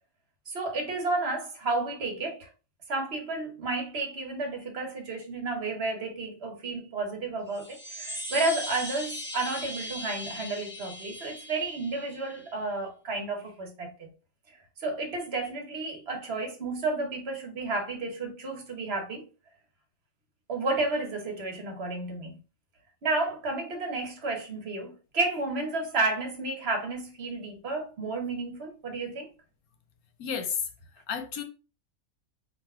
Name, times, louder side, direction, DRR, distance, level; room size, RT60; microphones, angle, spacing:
voice 1, 0.5-2.5 2.9-14.1 14.5-19.2 20.5-22.4 23.0-29.3, right 3 dB, 50° right, 1.3 m, -32 dB
sound 1, 7.5-12.5, equal, 10° left, 0.8 m, -39 dB
voice 2, 30.2-30.7 31.1-31.4, left 7 dB, 85° left, 1.3 m, -31 dB
3.9 x 2.9 x 4.3 m
omnidirectional pair, 1.5 m